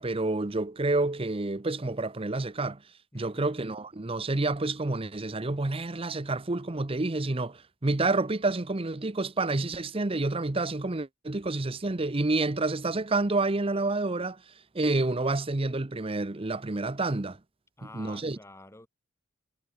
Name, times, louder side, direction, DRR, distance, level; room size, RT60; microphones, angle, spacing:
voice 1, 0.0-2.8 3.1-14.4 14.7-17.4 17.9-18.4, right 2 dB, 25° right, 0.8 m, -29 dB
voice 2, 3.1-3.6 17.8-18.9, left 2 dB, 15° left, 2.2 m, -49 dB
head